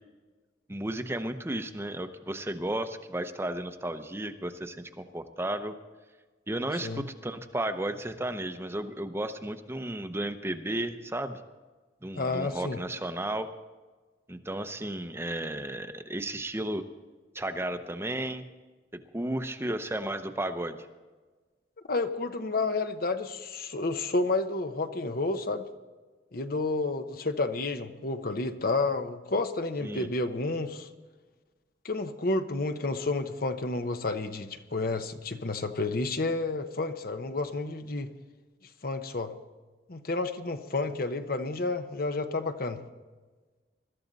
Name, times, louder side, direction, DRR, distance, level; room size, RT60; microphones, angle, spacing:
voice 1, 0.7-5.7 6.5-11.4 12.0-13.5 14.3-16.8 17.3-18.5 18.9-20.8 29.8-30.1, right 1 dB, 15° right, 8 dB, 0.7 m, -33 dB
voice 2, 12.1-12.8 21.9-25.7 26.3-30.9 31.8-38.1 38.8-39.3 39.9-42.8, left 3 dB, 55° left, 8 dB, 0.9 m, -30 dB
21.5 x 13.0 x 4.1 m, 1.3 s
head